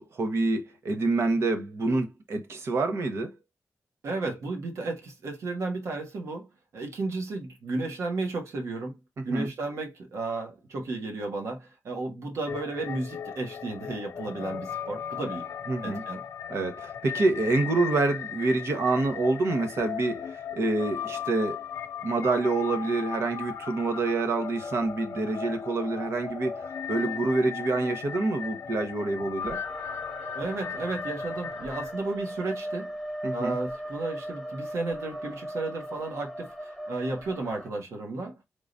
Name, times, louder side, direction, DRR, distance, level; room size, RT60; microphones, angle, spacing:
voice 1, 0.0-3.3 9.2-9.5 15.7-16.0 16.5-21.6 22.0-29.6 33.2-33.6, right 3 dB, 70° right, 1.1 m, -27 dB
voice 2, 4.0-6.5 6.7-9.0 9.2-15.5 15.8-16.2 30.3-32.9 33.3-38.4, right 3 dB, 85° right, 1.5 m, -33 dB
sound 1, 12.5-31.9, left 7 dB, 85° left, 0.6 m, -37 dB
sound 2, 29.4-37.7, equal, ahead, 0.7 m, -37 dB
4.8 x 3.8 x 2.6 m
wide cardioid pair, 100°, 5 cm